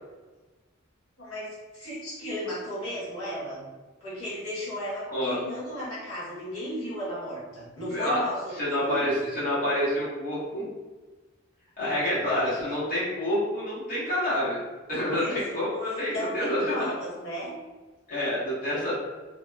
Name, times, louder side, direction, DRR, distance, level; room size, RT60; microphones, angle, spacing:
voice 1, 1.2-3.6 4.0-9.2 11.8-12.6 15.2-15.4 15.9-17.6, equal, 85° left, -8 dB, 1.1 m, -35 dB
voice 2, 7.9-8.2 8.6-10.6 11.8-14.6 14.9-16.9 18.1-18.9, left 1 dB, 45° left, -10 dB, 0.8 m, -28 dB
2.8 x 2.0 x 2.2 m, 1.2 s
head